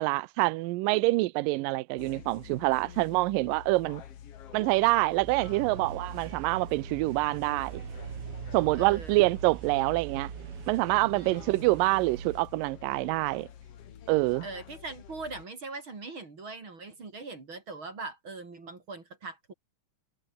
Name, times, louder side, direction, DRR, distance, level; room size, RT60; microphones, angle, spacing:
voice 1, 0.0-4.0 4.5-7.8 8.5-10.3 10.7-13.5 14.1-14.5, right 21 dB, 80° right, 2.3 m, -26 dB
sound 1, 2.0-15.5, left 9 dB, 50° left, 2.1 m, -48 dB
sound 2, 5.2-12.4, right 11 dB, 65° right, 1.5 m, -42 dB
voice 2, 8.8-9.3 11.1-11.7 14.4-19.5, right 3 dB, 35° right, 4.2 m, -41 dB
omnidirectional pair, 4.1 m